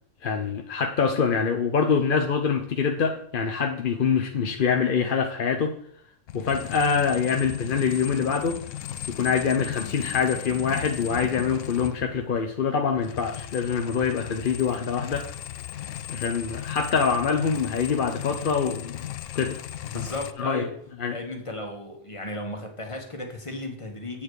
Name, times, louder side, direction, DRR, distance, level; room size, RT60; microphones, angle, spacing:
voice 1, 0.2-5.7 6.3-8.6 9.2-15.3 16.1-19.0 19.3-19.6 19.9-20.1 20.4-20.6 21.0-21.2, left 6 dB, 50° left, 4 dB, 0.8 m, -25 dB
sound 1, 6.3-12.4 12.6-20.3, left 11 dB, 80° left, 1.0 m, -37 dB
voice 2, 19.9-20.7 21.1-24.2, left 1 dB, 25° left, 2 dB, 1.6 m, -35 dB
8.5 x 7.3 x 4.8 m, 0.65 s
omnidirectional pair, 1.3 m